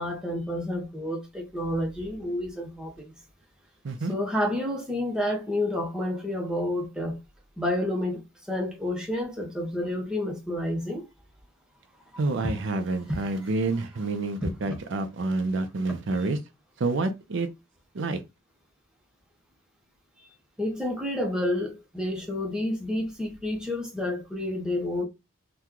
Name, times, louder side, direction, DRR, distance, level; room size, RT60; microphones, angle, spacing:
voice 1, 0.0-3.1 4.1-7.2 7.6-8.2 8.5-11.0 12.4-12.5 13.1-13.2 14.7-14.8 20.6-25.0, left 1 dB, 5° right, 0.7 m, -29 dB
voice 2, 12.2-16.4 16.8-17.5 17.9-18.2, right 3 dB, 55° right, 0.4 m, -28 dB
2.9 x 2.2 x 3.6 m
head